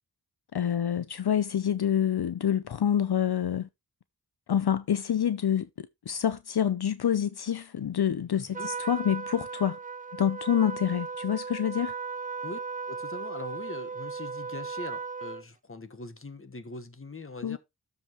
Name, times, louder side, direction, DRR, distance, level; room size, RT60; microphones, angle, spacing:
voice 1, 0.5-3.7 4.5-9.8 10.2-11.9 17.4-17.6, left 9 dB, 70° left, 0.7 m, -27 dB
voice 2, 8.3-8.7 12.4-12.6 12.9-17.6, left 3 dB, 35° left, 1.4 m, -41 dB
Trumpet, 8.5-15.4, right 5 dB, 20° right, 0.4 m, -36 dB
13.0 x 5.1 x 3.0 m
wide cardioid pair, 80°, 39 cm